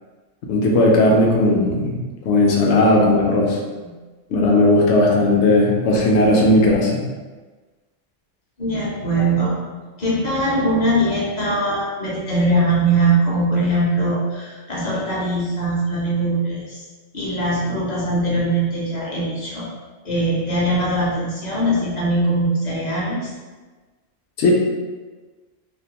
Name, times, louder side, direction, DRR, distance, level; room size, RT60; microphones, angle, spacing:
voice 1, 0.5-2.0 2.2-3.6 4.3-7.0 24.4-24.5, left 1 dB, 70° left, -2 dB, 0.8 m, -16 dB
voice 2, 8.6-9.6 10.0-16.8 17.1-19.7 20.0-23.3, right 1 dB, 45° left, -6 dB, 0.6 m, -21 dB
2.5 x 2.1 x 2.8 m, 1.3 s
omnidirectional pair, 1.3 m